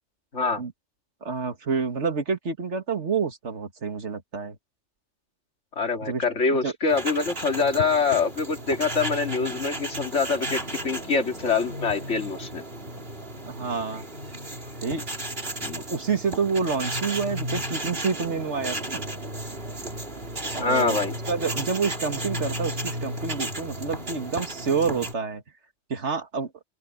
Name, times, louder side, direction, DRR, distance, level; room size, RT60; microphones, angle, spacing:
voice 1, 0.3-0.6 5.8-12.6 15.6-15.8 20.6-21.1, left 4 dB, 70° left, 2.7 m, -25 dB
voice 2, 1.2-4.6 6.1-6.2 6.5-6.7 13.5-14.1 14.8-15.0 15.7-19.0 20.5-21.0 21.3-25.4 25.9-26.5, right 5 dB, 70° right, 2.1 m, -28 dB
sound 1, 6.9-25.1, right 1 dB, 50° right, 4.1 m, -34 dB
open air
omnidirectional pair, 1.2 m